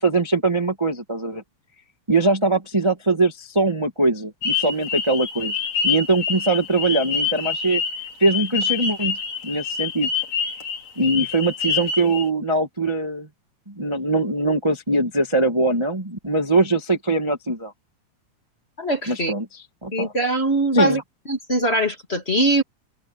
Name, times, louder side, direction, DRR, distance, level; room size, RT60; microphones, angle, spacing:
voice 1, 0.0-1.4 2.1-5.5 5.8-7.8 8.2-9.2 9.4-10.1 11.0-13.3 13.8-17.7 19.1-19.5 19.8-20.1 20.7-21.0, right 2 dB, 10° right, 1.8 m, -21 dB
sound 1, 4.4-12.3, left 6 dB, 65° left, 3.7 m, -26 dB
voice 2, 18.8-19.3 19.9-21.0 21.3-22.6, right 1 dB, 20° left, 2.6 m, -22 dB
omnidirectional pair, 3.3 m